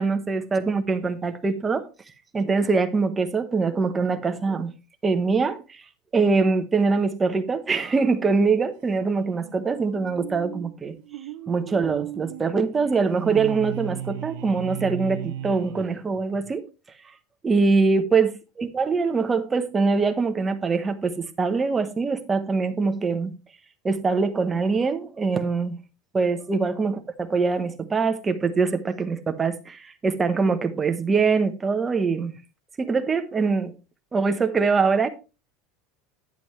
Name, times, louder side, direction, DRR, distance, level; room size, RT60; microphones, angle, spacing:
voice 1, 0.0-1.9 2.3-4.7 5.0-5.8 6.1-10.9 11.5-16.6 17.4-23.4 23.8-25.7 26.1-32.3 32.8-33.7 34.1-35.1, right 4 dB, 15° right, 0.9 m, -23 dB
sound 1, 8.9-16.5, right 12 dB, 65° right, 0.7 m, -36 dB
10.5 x 7.7 x 3.1 m
supercardioid pair, 165°, 0 cm